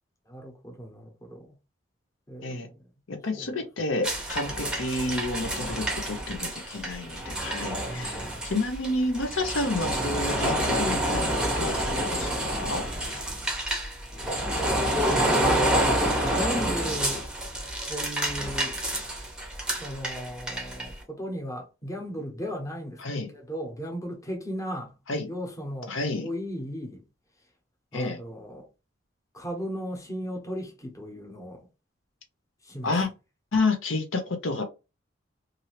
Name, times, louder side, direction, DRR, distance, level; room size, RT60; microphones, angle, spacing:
voice 1, 0.3-1.6 2.3-2.8 3.3-3.5 7.8-8.5 14.8-15.9 16.2-17.3 17.9-18.8 19.7-23.0 23.3-25.0 25.3-27.0 27.9-28.7 29.3-31.6 32.6-32.9, equal, 15° left, 1.0 m, -36 dB
voice 2, 3.1-12.8 23.0-23.3 25.1-25.3 25.9-26.3 27.9-28.2 32.8-33.1 33.5-34.6, left 2 dB, 80° left, 0.8 m, -30 dB
sound 1, 4.0-20.9, right 1 dB, 5° right, 0.8 m, -28 dB
2.9 x 2.7 x 3.0 m
head